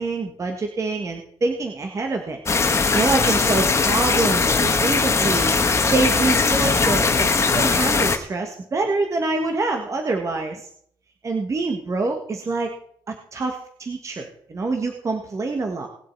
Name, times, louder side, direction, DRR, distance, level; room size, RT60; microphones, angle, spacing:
voice 1, 0.0-2.4 2.9-10.7 11.2-12.7 13.1-15.9, right 3 dB, 35° right, 3 dB, 1.7 m, -25 dB
sound 1, 2.5-8.2, left 4 dB, 30° left, 1.4 m, -20 dB
19.5 x 7.5 x 4.7 m, 0.63 s
cardioid pair, 115°, 9 cm